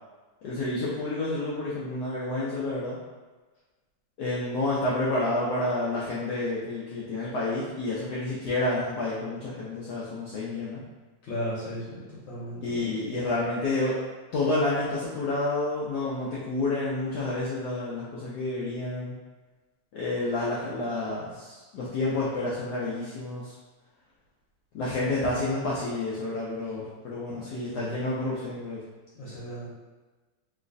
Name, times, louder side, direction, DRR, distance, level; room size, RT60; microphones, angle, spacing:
voice 1, 0.4-3.0 4.2-10.8 12.6-14.0 14.3-19.1 19.9-23.5 24.7-28.8, left 2 dB, 85° left, -7 dB, 0.8 m, -29 dB
voice 2, 11.3-12.9 27.3-27.4 27.7-27.9 29.2-29.7, equal, 65° left, -8 dB, 1.4 m, -36 dB
3.1 x 3.1 x 2.5 m, 1.3 s
omnidirectional pair, 2.4 m